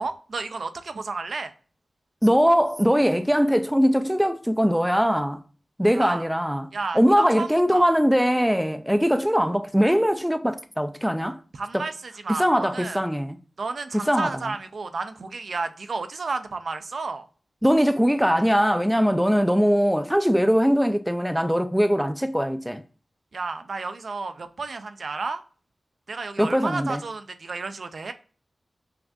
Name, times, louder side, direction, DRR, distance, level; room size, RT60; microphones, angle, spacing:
voice 1, 0.0-1.5 5.9-6.2 6.7-7.0 7.4-7.9 11.5-13.0 13.6-17.3 23.3-25.4 26.1-28.1, right 4 dB, 75° right, 0.4 m, -32 dB
voice 2, 2.2-5.4 5.8-11.4 11.7-11.9 12.3-13.4 13.9-14.5 17.6-22.8 26.4-27.0, equal, ahead, 0.3 m, -21 dB
5.7 x 2.6 x 2.2 m
wide cardioid pair, 85°, 0 cm